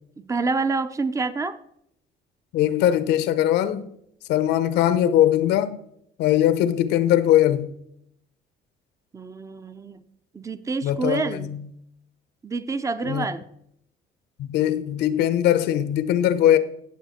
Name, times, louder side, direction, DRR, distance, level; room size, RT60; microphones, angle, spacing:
voice 1, 0.2-1.6 9.1-10.0 10.3-11.5 12.4-13.5, right 4 dB, 20° right, 0.6 m, -27 dB
voice 2, 2.5-3.9 4.3-5.8 6.2-7.7 10.8-11.6 13.0-13.3 14.4-16.6, left 11 dB, 85° left, 0.9 m, -20 dB
17.0 x 7.0 x 4.3 m
cardioid pair, 110°, 17 cm